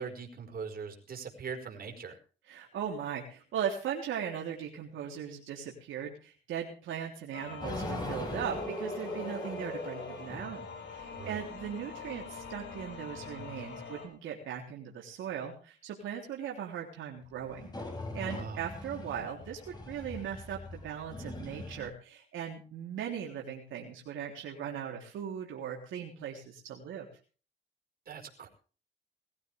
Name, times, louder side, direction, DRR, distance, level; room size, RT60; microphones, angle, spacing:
voice 1, 0.0-2.2 11.1-11.4 18.3-18.6 28.1-28.5, right 5 dB, 50° right, 2 dB, 4.9 m, -41 dB
voice 2, 2.5-10.7 10.9-17.7 18.1-27.1, right 8 dB, 85° right, -1 dB, 3.4 m, -38 dB
sound 1, 7.3-14.1, left 5 dB, 65° left, 4.7 m, -45 dB
sound 2, 7.6-13.9 17.4-21.9, left 1 dB, 20° left, 7.5 m, -41 dB
20.0 x 14.5 x 3.5 m, 0.39 s
cardioid pair, 90°, 20 cm